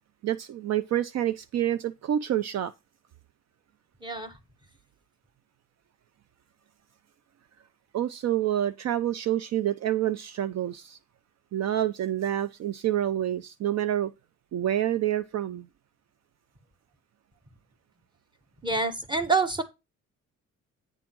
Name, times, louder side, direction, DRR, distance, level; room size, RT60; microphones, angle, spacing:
voice 1, 0.2-2.7 7.9-11.0 11.5-14.1 14.5-15.7, right 11 dB, 60° right, 0.6 m, -28 dB
voice 2, 4.0-4.4 18.6-19.6, right 4 dB, 15° right, 1.5 m, -26 dB
9.1 x 3.5 x 6.1 m
cardioid pair, 90°, 30 cm